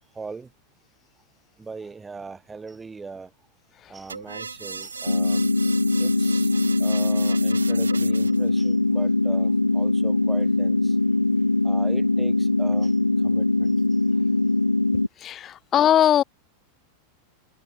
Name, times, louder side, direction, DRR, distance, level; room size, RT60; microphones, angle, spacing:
voice 1, 0.1-0.5 1.6-3.3 3.9-5.5 6.0-6.5 6.8-11.0 11.6-13.0 13.2-13.7, right 4 dB, 15° right, 6.7 m, -40 dB
sound 1, 4.1-8.5, right 4 dB, 75° right, 3.6 m, -36 dB
sound 2, 5.1-15.1, left 2 dB, 85° left, 0.4 m, -21 dB
voice 2, 15.2-16.2, left 11 dB, 30° left, 1.4 m, -20 dB
figure-of-eight pair, 90°, 0 cm